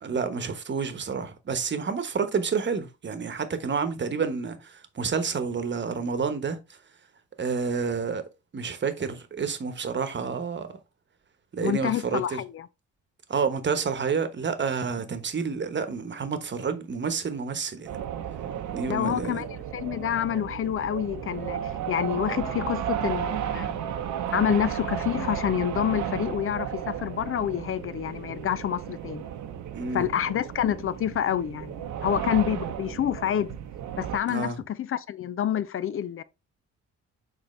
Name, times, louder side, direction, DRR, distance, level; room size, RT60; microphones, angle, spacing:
voice 1, 0.0-6.6 7.4-8.2 8.5-10.8 11.5-12.4 13.3-17.9 18.7-19.4 29.7-30.0 34.3-34.6, right 5 dB, 40° right, 1.1 m, -29 dB
voice 2, 11.6-12.7 18.9-19.5 19.7-23.8 24.3-29.2 29.9-33.5 34.0-36.2, left 10 dB, 45° left, 0.5 m, -28 dB
sound 1, 17.9-34.2, right 9 dB, 75° right, 0.9 m, -34 dB
6.6 x 4.4 x 3.2 m
cardioid pair, 90°, 30 cm